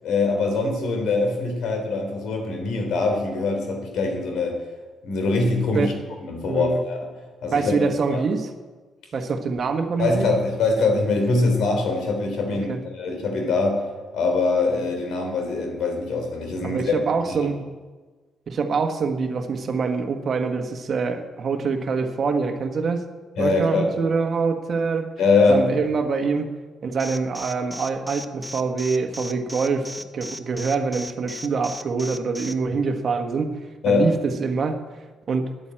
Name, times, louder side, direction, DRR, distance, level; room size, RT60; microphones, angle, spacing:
voice 1, 0.0-4.6 5.0-5.9 6.2-7.1 7.4-8.2 10.0-13.8 14.1-16.9 17.2-17.5 23.4-23.9 25.2-25.6 33.8-34.1, left 3 dB, 75° left, 3 dB, 3.4 m, -23 dB
voice 2, 6.5-6.8 7.5-8.5 9.1-10.3 12.5-12.8 16.6-17.6 18.5-23.0 23.4-25.1 25.5-26.5 26.8-29.9 30.1-33.5 33.9-34.8 35.3-35.5, right 4 dB, 50° right, 6 dB, 1.4 m, -25 dB
Alarm, 27.0-32.5, left 1 dB, 10° left, 0.8 m, -36 dB
10.5 x 8.0 x 9.0 m, 1.3 s
cardioid pair, 90°, 0 cm